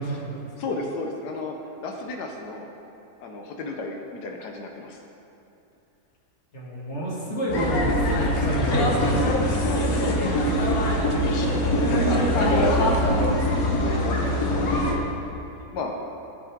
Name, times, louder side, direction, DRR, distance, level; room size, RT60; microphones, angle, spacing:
voice 1, 0.0-0.5 6.5-9.1, right 2 dB, 45° left, -6 dB, 2.6 m, -29 dB
voice 2, 0.6-2.7 3.2-5.0 8.7-10.8 11.1-12.6 13.8-15.0 15.7-15.9, left 3 dB, 85° left, 2 dB, 1.5 m, -33 dB
sound 1, 7.5-14.9, left 1 dB, 65° left, 1.6 m, -22 dB
17.0 x 7.2 x 3.7 m, 2.8 s
omnidirectional pair, 1.7 m